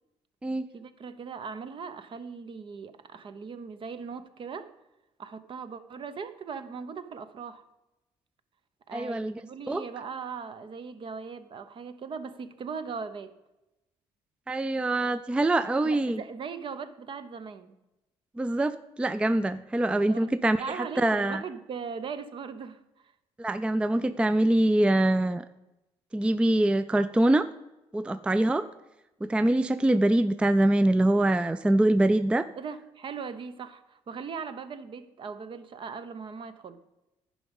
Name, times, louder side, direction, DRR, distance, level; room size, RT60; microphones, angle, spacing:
voice 1, 0.7-4.7 5.2-7.6 8.9-13.3 15.8-17.7 20.1-20.3 20.6-23.1 32.6-36.8, right 5 dB, 50° right, 0.7 m, -39 dB
voice 2, 8.9-9.3 9.7-9.8 14.5-16.2 18.4-21.4 23.4-25.5 26.1-27.5 27.9-28.7 29.2-32.5, right 1 dB, 10° right, 0.3 m, -24 dB
10.5 x 5.1 x 5.3 m
cardioid pair, 80°, 11 cm